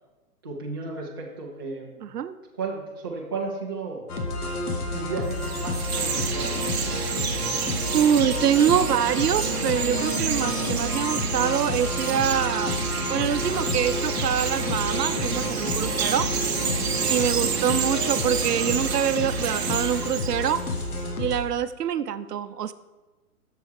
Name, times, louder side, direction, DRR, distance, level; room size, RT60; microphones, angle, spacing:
voice 1, 0.4-2.0 2.5-4.0 4.9-7.2 16.9-17.3, right 4 dB, 15° right, -4 dB, 0.6 m, -34 dB
voice 2, 2.0-2.3 7.9-12.7 13.1-16.3 17.1-20.6 21.2-22.7, right 9 dB, 85° right, 13 dB, 0.7 m, -25 dB
sound 1, 4.1-21.4, left 2 dB, 75° left, 1.8 m, -30 dB
Chirp tweet, 5.2-20.9, right 6 dB, 45° right, 1.0 m, -29 dB
8.0 x 7.0 x 4.6 m, 1.2 s
hypercardioid pair, 170°, 46 cm